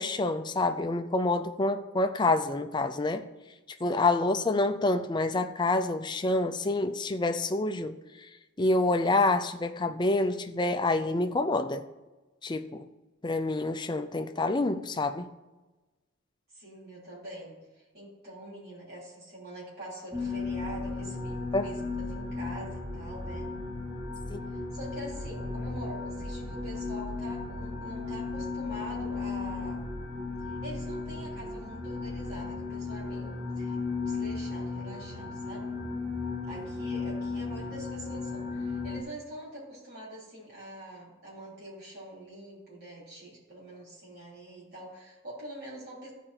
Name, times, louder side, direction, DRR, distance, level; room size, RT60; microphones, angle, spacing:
voice 1, 0.0-3.3 3.8-8.0 8.6-11.8 12.4-12.9 13.2-15.3 21.5-21.7 24.3-24.5, left 2 dB, 20° left, 0.4 m, -27 dB
voice 2, 16.5-23.5 24.5-29.9 30.4-35.7 36.5-46.1, right 1 dB, 50° right, 3.6 m, -45 dB
sound 1, 20.1-39.0, left 3 dB, 25° right, 1.7 m, -35 dB
14.5 x 5.0 x 4.3 m
head